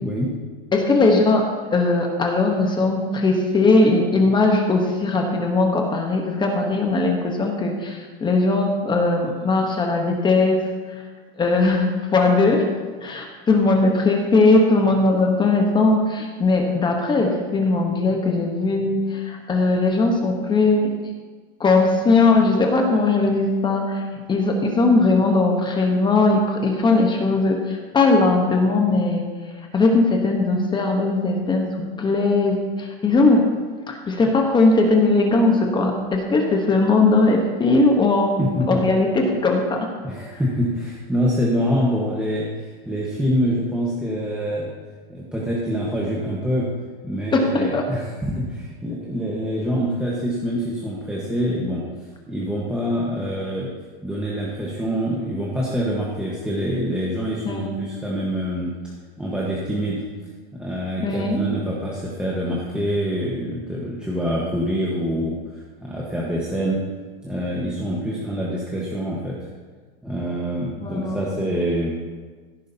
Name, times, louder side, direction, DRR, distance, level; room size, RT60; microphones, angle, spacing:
voice 1, 0.0-0.3 38.4-38.8 40.0-44.7 45.1-46.7 47.0-51.8 52.3-53.7 54.0-58.7 59.2-60.0 60.5-65.4 65.8-66.8 67.2-69.4 70.0-72.0, equal, 5° right, -6 dB, 1.3 m, -25 dB
voice 2, 0.7-11.0 11.4-12.7 13.0-20.9 21.6-29.3 29.5-33.5 33.9-38.4 38.7-39.9 47.3-47.9 57.4-57.7 61.0-61.4 70.8-71.3, left 3 dB, 15° left, 2 dB, 1.1 m, -19 dB
16.0 x 10.0 x 2.8 m, 1.4 s
supercardioid pair, 140°, 30 cm